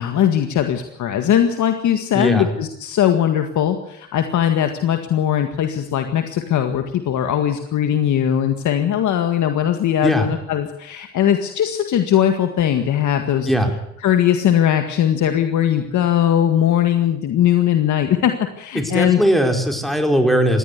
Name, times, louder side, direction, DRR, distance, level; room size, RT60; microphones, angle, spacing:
voice 1, 0.0-13.5 14.0-19.2, left 10 dB, 75° left, 6 dB, 1.9 m, -19 dB
voice 2, 2.1-2.5 10.0-10.3 13.5-13.7 18.7-20.6, equal, ahead, 3 dB, 4.7 m, -18 dB
20.5 x 16.0 x 8.3 m, 0.74 s
cardioid pair, 90°, 30 cm